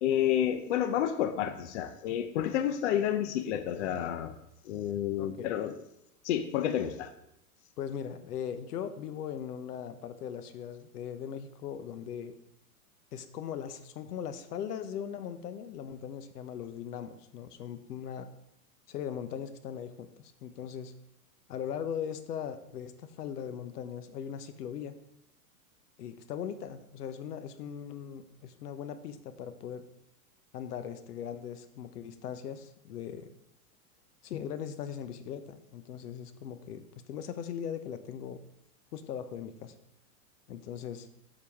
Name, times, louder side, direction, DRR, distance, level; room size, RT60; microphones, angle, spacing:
voice 1, 0.0-4.3 4.7-5.8 6.2-7.1, left 10 dB, 50° left, 9 dB, 0.6 m, -30 dB
voice 2, 5.2-5.5 7.8-12.3 13.1-18.4 18.9-20.9 21.5-24.9 26.0-29.8 30.5-33.3 34.2-36.8 37.1-38.4 38.9-39.7 40.5-41.1, left 8 dB, 80° left, 11 dB, 0.9 m, -39 dB
7.4 x 6.8 x 3.5 m, 0.85 s
supercardioid pair, 155°, 46 cm